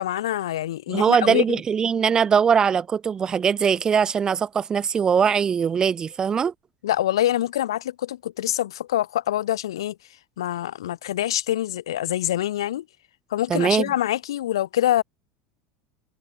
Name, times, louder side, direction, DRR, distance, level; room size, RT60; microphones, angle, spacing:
voice 1, 0.0-1.6 6.8-10.0 10.4-12.8 13.3-15.0, left 12 dB, 70° left, 0.7 m, -25 dB
voice 2, 0.9-6.5 13.5-13.9, right 7 dB, 30° right, 1.1 m, -21 dB
open air
figure-of-eight pair, 75°, 3 cm